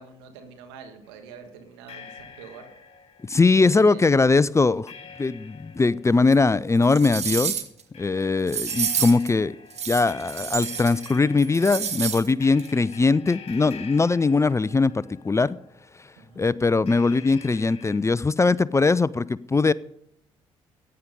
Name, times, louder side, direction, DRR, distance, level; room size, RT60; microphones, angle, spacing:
voice 1, 0.0-2.7 3.5-4.1 16.2-16.4, right 6 dB, 80° right, 1.9 m, -44 dB
sound 1, 1.0-1.2 1.9-15.9 16.9-18.0, left 6 dB, 45° left, 2.6 m, -47 dB
voice 2, 3.2-4.9 5.2-7.6 8.0-9.6 9.9-15.6 16.4-19.7, left 3 dB, 20° left, 0.5 m, -21 dB
sound 2, 6.3-6.4 6.8-7.8 8.5-9.3 9.7-11.1 11.4-12.3 12.6-12.7, right 8 dB, 50° right, 1.6 m, -29 dB
15.5 x 9.8 x 5.3 m
hypercardioid pair, 45°, 14 cm